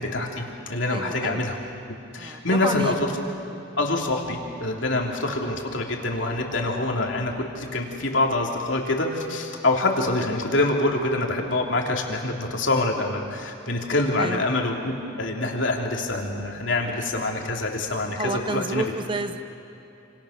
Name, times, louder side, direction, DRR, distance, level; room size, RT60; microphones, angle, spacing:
voice 1, 0.0-1.6 2.1-2.9 3.8-18.2 18.5-18.8, left 2 dB, 60° left, 1 dB, 3.3 m, -25 dB
voice 2, 0.9-1.5 2.2-3.0 3.5-3.7 14.2-14.4 18.2-19.4, right 2 dB, 25° right, 8 dB, 1.0 m, -30 dB
29.0 x 27.5 x 6.7 m, 2.9 s
head